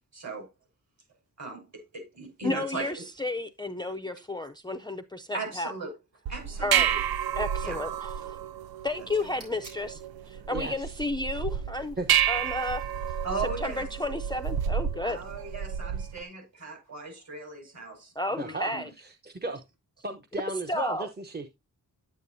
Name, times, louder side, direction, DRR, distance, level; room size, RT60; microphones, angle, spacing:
voice 1, 0.1-0.5 1.4-3.1 5.3-5.9 6.3-7.0 7.6-7.8 13.2-13.9 15.0-18.9, right 3 dB, 50° right, 5.3 m, -38 dB
voice 2, 2.4-5.7 6.6-6.9 7.4-8.4 8.8-10.0 10.3-12.0 12.3-12.8 13.4-15.2 18.2-18.9 20.7-21.1, left 2 dB, 10° left, 0.5 m, -32 dB
sound 1, 6.3-16.2, right 9 dB, 85° right, 0.5 m, -30 dB
sound 2, 8.9-14.1, right 2 dB, 65° right, 7.5 m, -57 dB
voice 3, 10.5-10.9 12.0-12.1 18.4-18.7 19.0-19.6 20.0-21.5, right 2 dB, 30° right, 1.0 m, -35 dB
10.0 x 9.1 x 2.7 m
wide cardioid pair, 130°, 35 cm